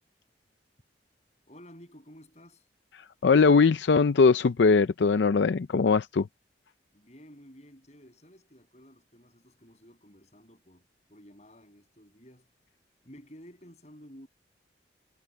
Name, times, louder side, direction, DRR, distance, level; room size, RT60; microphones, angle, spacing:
voice 1, 1.4-2.7 6.9-12.5 13.0-14.3, equal, 40° left, 7.4 m, -53 dB
voice 2, 3.0-6.3, left 4 dB, 80° left, 0.5 m, -21 dB
head